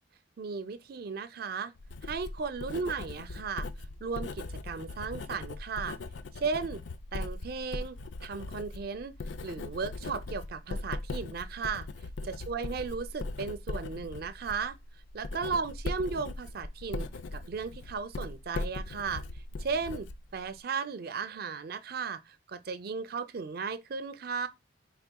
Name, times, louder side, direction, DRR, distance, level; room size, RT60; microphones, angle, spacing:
voice 1, 0.4-1.7 2.0-3.7 4.0-6.0 6.3-6.8 7.1-9.1 9.4-11.9 12.2-14.8 15.1-19.2 19.6-24.5, right 5 dB, 55° right, 0.4 m, -35 dB
Writing, 1.8-20.6, left 2 dB, 85° left, 0.4 m, -39 dB
4.6 x 3.5 x 2.2 m
head